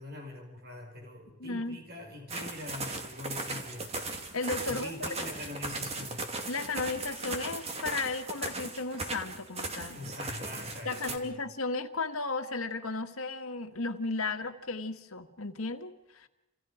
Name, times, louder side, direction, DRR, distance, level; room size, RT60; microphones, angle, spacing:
voice 1, 0.0-4.0 4.7-6.3 9.9-11.4, left 1 dB, 50° right, 2 dB, 5.4 m, -43 dB
voice 2, 1.4-1.8 4.3-5.1 6.5-10.0 10.9-16.3, left 3 dB, 80° left, 7 dB, 1.8 m, -34 dB
sound 1, 2.3-11.2, right 2 dB, 30° right, 2.5 m, -38 dB
29.5 x 27.5 x 5.0 m, 0.97 s
head